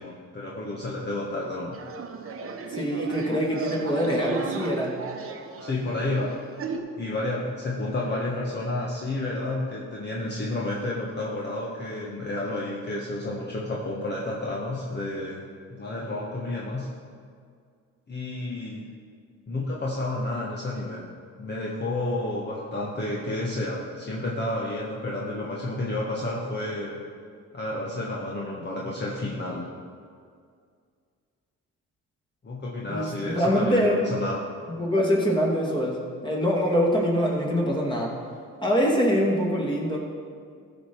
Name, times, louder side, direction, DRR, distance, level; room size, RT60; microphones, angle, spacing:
voice 1, 0.0-1.8 5.6-6.3 7.0-15.4 15.7-16.9 18.1-18.9 19.5-21.0 21.4-27.0 27.5-29.7 32.4-34.4, left 2 dB, 35° left, -3 dB, 1.4 m, -30 dB
sound 1, 1.7-6.8, right 4 dB, 45° right, 1.0 m, -36 dB
voice 2, 2.7-5.0 32.9-34.1 34.8-38.1 38.6-40.0, equal, 15° left, -2 dB, 2.4 m, -24 dB
14.5 x 5.5 x 4.7 m, 2.2 s
cardioid pair, 90°, 30 cm